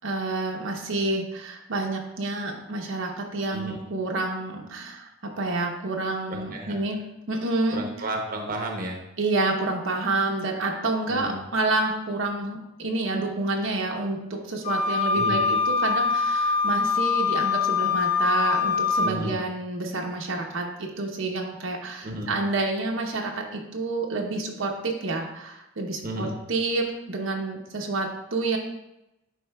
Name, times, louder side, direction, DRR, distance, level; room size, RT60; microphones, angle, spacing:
voice 1, 0.0-7.0 7.3-7.8 9.2-28.6, right 2 dB, 80° right, 0 dB, 0.9 m, -28 dB
voice 2, 6.3-6.8 7.7-9.0 11.1-11.4 15.1-15.4 19.0-19.4 22.0-22.3 26.0-26.3, right 1 dB, 45° right, 1 dB, 0.9 m, -32 dB
Wind instrument woodwind instrument, 14.6-19.1, left 5 dB, 40° left, 2.4 m, -23 dB
11.0 x 4.3 x 2.3 m, 0.90 s
head